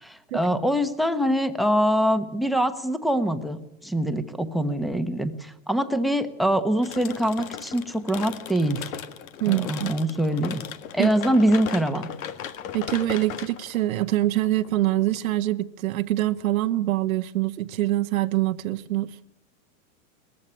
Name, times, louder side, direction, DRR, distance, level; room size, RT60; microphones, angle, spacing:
voice 1, 0.0-8.8 9.5-10.6 10.9-12.1, equal, ahead, 12 dB, 1.0 m, -24 dB
sound 1, 6.8-15.5, left 9 dB, 80° left, 1.8 m, -37 dB
voice 2, 9.4-9.9 11.0-11.1 12.7-19.1, right 15 dB, 85° right, 9 dB, 1.0 m, -24 dB
20.0 x 15.0 x 9.9 m, 0.88 s
supercardioid pair, 145°, 40 cm